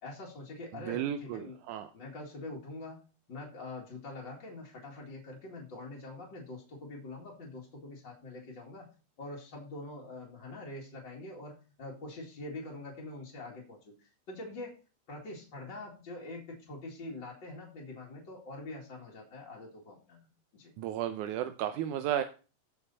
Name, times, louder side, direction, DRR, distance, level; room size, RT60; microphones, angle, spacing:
voice 1, 0.0-1.6 1.9-3.0 3.3-8.9 9.2-14.8 15.1-20.3 20.5-20.7, left 2 dB, 35° left, -3 dB, 2.5 m, -44 dB
voice 2, 0.7-1.9 20.8-22.2, right 10 dB, 75° right, 8 dB, 1.9 m, -33 dB
15.5 x 5.6 x 4.1 m, 0.35 s
omnidirectional pair, 4.1 m